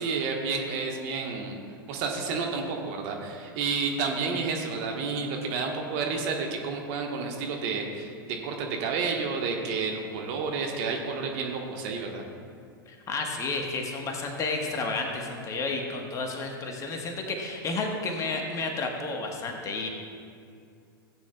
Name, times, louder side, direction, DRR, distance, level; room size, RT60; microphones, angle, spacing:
voice 1, 0.0-1.5 1.9-12.2, right 4 dB, 45° right, 1 dB, 1.3 m, -30 dB
voice 2, 12.9-19.9, left 3 dB, 25° left, 2 dB, 1.3 m, -31 dB
16.5 x 8.8 x 2.3 m, 2.3 s
figure-of-eight pair, 90°, 12 cm